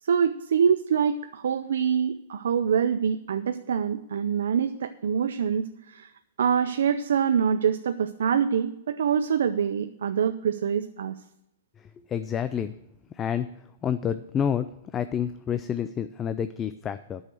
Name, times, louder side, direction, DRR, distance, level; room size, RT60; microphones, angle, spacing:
voice 1, 0.0-6.1 6.4-11.2, right 7 dB, 80° right, 9 dB, 0.5 m, -25 dB
voice 2, 12.1-12.7 13.1-13.5 13.8-14.7 14.9-17.2, left 8 dB, 20° left, 12 dB, 0.4 m, -28 dB
8.9 x 6.4 x 7.7 m, 0.86 s
hypercardioid pair, 135°, 0 cm